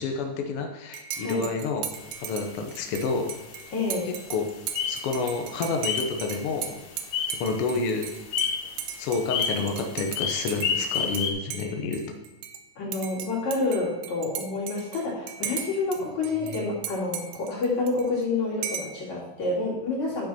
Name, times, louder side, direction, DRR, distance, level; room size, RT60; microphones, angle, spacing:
voice 1, 0.0-1.9 2.2-3.3 4.3-4.4 4.9-6.9 7.3-8.1 9.0-12.0 16.4-16.6, left 4 dB, 85° left, 4 dB, 1.2 m, -29 dB
Dishes pots and pans / Cutlery silverware / Chink clink, 0.9-11.2 11.5-12.6 12.9-18.2 18.6-19.0, right 8 dB, 80° right, 2.3 m, -37 dB
voice 2, 1.1-1.4 3.7-4.1 12.8-20.3, left 3 dB, 55° left, -6 dB, 3.9 m, -28 dB
sound 1, 1.9-11.3, left 7 dB, 70° left, 1.7 m, -33 dB
10.5 x 6.0 x 4.3 m, 1.1 s
omnidirectional pair, 4.0 m